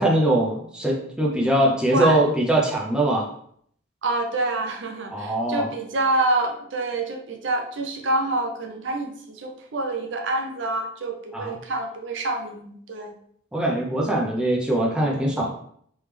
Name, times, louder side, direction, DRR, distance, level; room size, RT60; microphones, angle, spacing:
voice 1, 0.0-3.3 5.1-5.7 11.3-11.5 13.5-15.5, right 1 dB, 5° right, -3 dB, 0.5 m, -22 dB
voice 2, 1.9-2.2 4.0-13.2, right 2 dB, 65° right, 3 dB, 0.6 m, -27 dB
3.3 x 3.2 x 3.2 m, 0.65 s
head